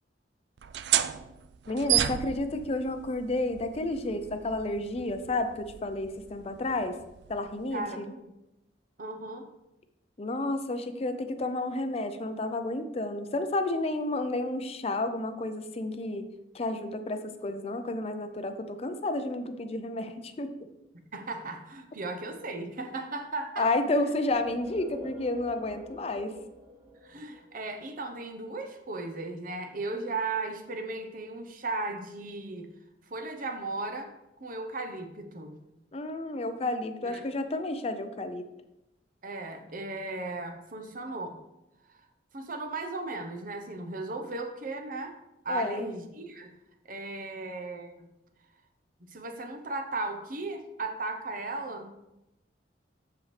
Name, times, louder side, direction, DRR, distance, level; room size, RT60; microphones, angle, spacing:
sound 1, 0.6-7.9, right 11 dB, 65° right, 0.4 m, -33 dB
voice 1, 1.7-7.0 7.3-8.1 10.2-16.3 16.5-20.5 23.6-26.3 35.9-38.4 45.5-45.9, left 2 dB, 35° left, 9 dB, 0.5 m, -31 dB
voice 2, 7.7-8.2 9.0-9.5 21.1-23.7 27.0-32.7 33.1-34.1 34.4-35.6 37.0-37.3 39.2-41.4 41.9-42.0 42.3-45.2 45.4-46.5 46.9-48.1 49.1-51.9, right 2 dB, 50° right, 6 dB, 0.8 m, -36 dB
sound 2, 24.3-27.9, left 1 dB, 15° right, 1.3 m, -46 dB
7.8 x 7.0 x 3.2 m, 0.93 s
head